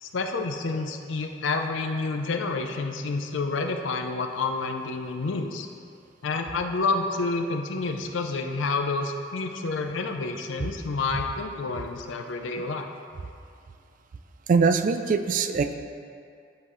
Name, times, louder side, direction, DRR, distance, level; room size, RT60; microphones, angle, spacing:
voice 1, 0.0-5.7 6.2-12.9, left 3 dB, 75° left, 5 dB, 0.5 m, -29 dB
voice 2, 14.5-15.7, right 5 dB, 45° right, 9 dB, 0.3 m, -22 dB
10.5 x 3.8 x 3.1 m, 2.4 s
head